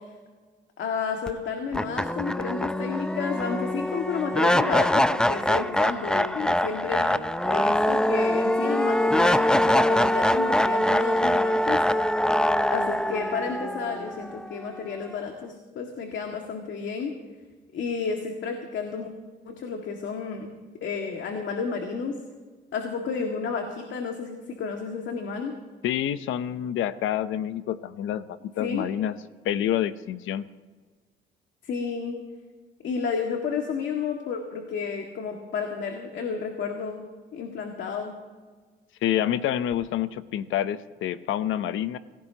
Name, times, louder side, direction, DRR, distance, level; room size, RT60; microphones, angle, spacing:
voice 1, 0.8-7.2 7.4-12.1 12.7-17.1 17.7-19.1 19.4-20.5 20.8-22.2 22.7-25.5 28.6-28.9 31.6-32.2 32.8-37.1 37.3-38.1, left 5 dB, 70° left, 2 dB, 2.1 m, -31 dB
sound 1, 1.3-1.4 1.7-14.8, left 1 dB, 5° left, 0.5 m, -23 dB
voice 2, 25.8-29.1 29.4-30.4 39.0-42.0, left 11 dB, 85° left, 12 dB, 0.8 m, -27 dB
27.5 x 17.0 x 3.0 m, 1.4 s
cardioid pair, 90°, 20 cm